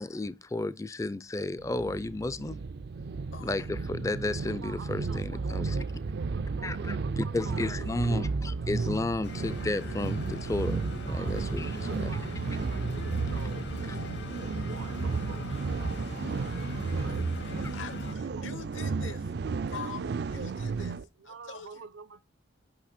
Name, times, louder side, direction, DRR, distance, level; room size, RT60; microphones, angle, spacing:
voice 1, 0.0-2.6 3.4-5.8 6.6-10.8 11.1-12.1, left 2 dB, 15° left, 0.3 m, -33 dB
sound 1, 1.6-21.0, right 4 dB, 55° right, 0.4 m, -33 dB
voice 2, 3.3-3.7 17.6-19.4 19.7-21.0 21.2-21.9, left 6 dB, 75° left, 1.1 m, -44 dB
voice 3, 4.4-7.8 8.5-9.0 11.1-13.7 14.6-16.5 17.0-17.3 17.8-18.6 19.4-19.5 19.8-20.6 21.0-22.3, right 5 dB, 75° right, 0.7 m, -48 dB
sound 2, 9.2-18.1, left 2 dB, 55° left, 0.9 m, -39 dB
8.6 x 5.8 x 4.2 m
head